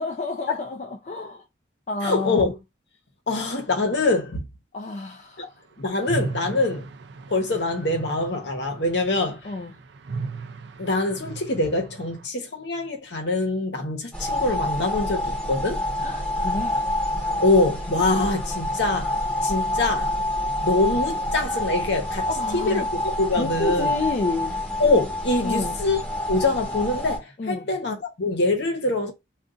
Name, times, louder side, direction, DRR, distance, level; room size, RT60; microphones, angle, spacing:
voice 1, 0.0-1.4 1.9-2.5 4.7-5.6 6.4-6.7 9.4-9.8 16.0-16.8 22.3-22.9 23.4-24.6 25.4-25.8 27.4-27.7, left 3 dB, 40° left, 0.4 m, -30 dB
voice 2, 2.0-2.5 3.3-4.5 5.4-5.5 5.8-6.9 7.3-9.4 10.8-15.8 17.4-19.1 19.4-20.1 20.6-22.3 22.5-22.9 23.2-23.9 24.8-26.0 26.3-29.1, left 2 dB, 75° left, 1.0 m, -24 dB
sound 1, 6.0-12.3, right 4 dB, 75° right, 0.4 m, -36 dB
sound 2, 14.1-27.2, left 1 dB, 5° left, 0.8 m, -27 dB
2.4 x 2.4 x 3.7 m
head